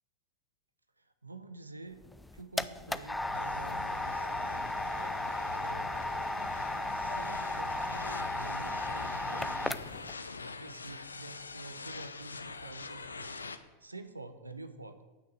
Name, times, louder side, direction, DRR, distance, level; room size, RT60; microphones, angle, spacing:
voice 1, 1.0-2.0 2.3-4.6 5.5-5.9 6.9-9.8 10.4-13.4 13.8-15.0, right 3 dB, 80° right, 9 dB, 0.8 m, -48 dB
sound 1, 2.0-10.1, left 1 dB, 5° left, 0.4 m, -35 dB
sound 2, 3.2-10.0, left 5 dB, 50° left, 1.2 m, -47 dB
sound 3, 3.3-13.6, left 4 dB, 75° left, 0.6 m, -45 dB
9.1 x 6.4 x 8.5 m, 1.2 s
figure-of-eight pair, 90°, 0 cm